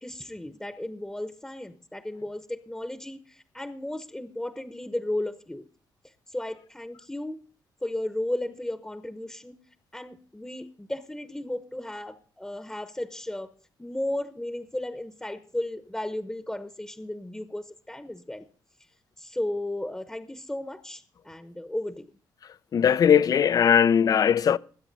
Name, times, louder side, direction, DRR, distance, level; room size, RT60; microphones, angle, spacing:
voice 1, 0.0-5.7 6.0-7.4 7.8-9.6 9.9-13.5 13.8-18.5 19.2-22.1, left 1 dB, 10° left, 0.9 m, -34 dB
voice 2, 22.7-24.6, left 8 dB, 50° left, 0.5 m, -19 dB
20.5 x 8.2 x 4.0 m
cardioid pair, 85°, 8 cm